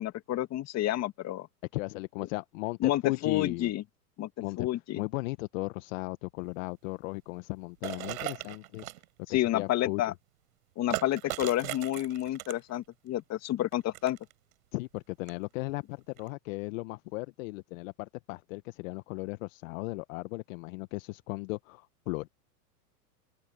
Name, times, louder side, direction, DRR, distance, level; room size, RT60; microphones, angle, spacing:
voice 1, 0.0-1.5 2.8-3.8 4.2-4.3 4.6-5.0 9.3-10.1 10.8-14.2, left 14 dB, 35° left, 2.0 m, -30 dB
voice 2, 1.7-3.7 4.4-4.7 5.0-8.9 9.3-10.0 14.7-22.3, left 23 dB, 55° left, 1.1 m, -36 dB
sound 1, 7.8-9.0 10.9-12.8 13.7-14.3 15.3-15.4 16.2-16.3, right 17 dB, 65° right, 6.8 m, -37 dB
open air
hypercardioid pair, 110°, 47 cm